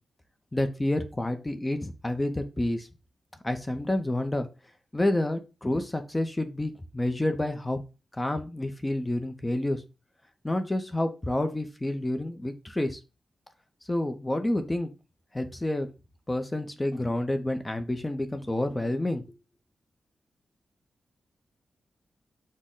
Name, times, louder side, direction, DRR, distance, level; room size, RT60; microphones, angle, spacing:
voice 1, 0.5-2.9 3.4-4.5 4.9-7.8 8.1-9.8 10.4-13.0 13.9-14.9 15.3-15.9 16.3-19.2, left 1 dB, 15° left, 7 dB, 0.5 m, -29 dB
6.2 x 2.1 x 3.7 m, 0.30 s
wide cardioid pair, 135°, 0 cm